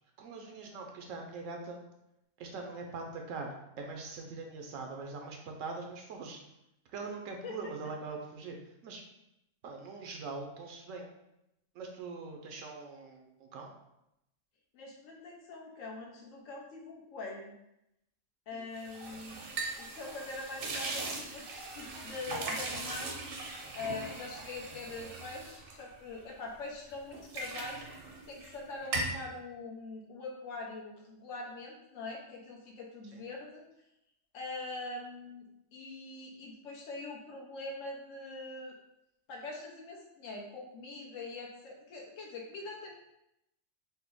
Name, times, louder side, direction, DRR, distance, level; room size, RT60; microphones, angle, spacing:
voice 1, 0.2-1.8 2.4-6.4 6.9-9.0 9.6-11.1 11.7-13.7 18.5-18.7 33.1-33.2, right 4 dB, 85° right, 2 dB, 1.0 m, -42 dB
voice 2, 14.7-17.5 18.5-19.4 19.8-23.3 23.7-27.9 28.3-33.6 34.3-35.5 35.7-38.7 39.3-42.9, left 3 dB, 80° left, -1 dB, 1.1 m, -43 dB
sound 1, 18.8-26.5 26.9-28.6 28.8-29.2, right 3 dB, 55° right, 0.7 m, -39 dB
4.2 x 2.0 x 3.6 m, 0.85 s
omnidirectional pair, 1.3 m